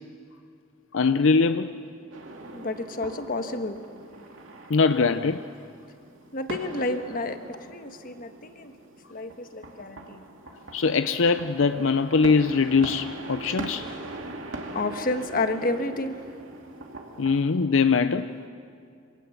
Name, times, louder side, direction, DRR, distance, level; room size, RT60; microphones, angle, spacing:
voice 1, 0.9-1.7 4.7-5.4 10.7-13.9 17.2-18.3, left 4 dB, 75° left, 10 dB, 0.6 m, -22 dB
sound 1, 2.1-17.4, right 2 dB, 80° right, 2.3 m, -41 dB
voice 2, 2.5-3.8 6.3-8.7 9.1-10.2 14.7-16.2, left 2 dB, 45° left, 7 dB, 1.3 m, -30 dB
26.5 x 18.0 x 7.2 m, 2.3 s
head